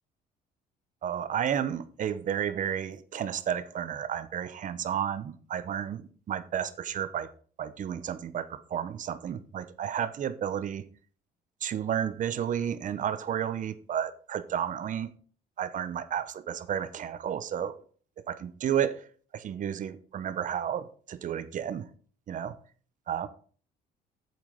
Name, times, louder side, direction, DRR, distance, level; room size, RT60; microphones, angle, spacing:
voice 1, 1.0-7.3 7.6-10.8 11.6-15.1 15.6-17.7 18.2-19.0 19.3-21.9 22.3-22.5 23.1-23.3, right 9 dB, 50° right, 13 dB, 1.1 m, -32 dB
8.6 x 7.5 x 5.3 m, 0.43 s
cardioid pair, 110°, 17 cm